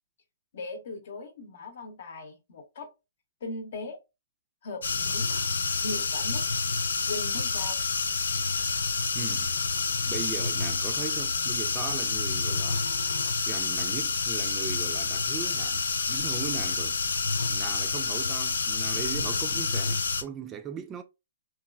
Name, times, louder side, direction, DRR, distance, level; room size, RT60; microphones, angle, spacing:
voice 1, 0.5-2.9 3.4-4.0 4.6-5.3 5.7-6.4 7.1-7.8, left 2 dB, 60° left, 0.8 m, -38 dB
sound 1, 4.8-20.2, left 4 dB, 75° left, 0.4 m, -28 dB
voice 2, 9.1-9.5 10.1-12.9 13.5-17.0 17.5-21.0, right 7 dB, 20° right, 0.3 m, -38 dB
3.0 x 2.2 x 2.3 m
hypercardioid pair, 135°, 0 cm